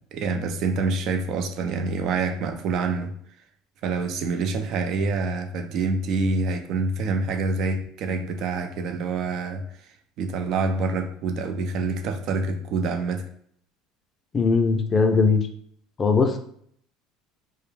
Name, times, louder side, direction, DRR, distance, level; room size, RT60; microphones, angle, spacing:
voice 1, 0.1-3.1 3.8-9.6 10.2-13.3, right 4 dB, 60° right, 6 dB, 0.4 m, -26 dB
voice 2, 14.3-15.4 16.0-16.4, left 4 dB, 30° left, 5 dB, 0.4 m, -20 dB
2.3 x 2.1 x 3.1 m, 0.64 s
supercardioid pair, 95°, 0 cm